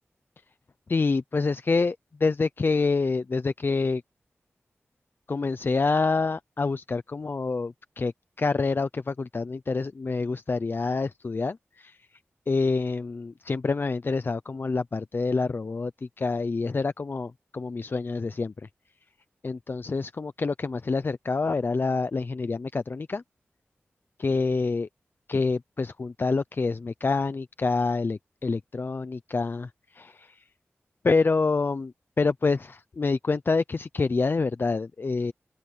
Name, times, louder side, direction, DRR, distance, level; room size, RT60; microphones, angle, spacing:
voice 1, 0.9-4.0 5.3-8.1 8.4-12.1 12.5-18.7 19.4-23.2 24.2-24.9 25.3-30.4 31.0-35.3, left 4 dB, 50° left, 0.6 m, -27 dB
open air
cardioid pair, 60°, 5 cm